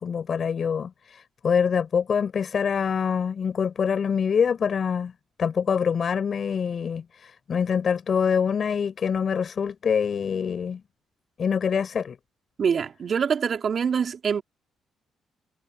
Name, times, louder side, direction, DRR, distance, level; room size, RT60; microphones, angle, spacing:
voice 1, 0.0-5.1 5.4-10.8 11.4-12.2, left 7 dB, 50° left, 7.2 m, -25 dB
voice 2, 12.6-14.4, right 6 dB, 50° right, 3.5 m, -25 dB
cardioid pair, 90°, 0 cm